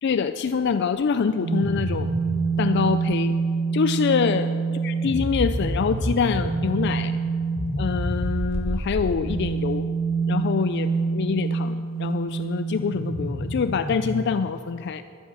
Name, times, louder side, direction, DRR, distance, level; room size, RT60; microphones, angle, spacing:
voice 1, 0.0-2.1 2.6-3.4 3.7-4.5 4.8-7.2 7.8-9.9 10.3-15.0, left 5 dB, 55° left, 11 dB, 0.4 m, -25 dB
sound 1, 1.4-14.2, right 3 dB, 75° right, 2.2 m, -26 dB
13.0 x 11.5 x 6.6 m, 2.8 s
head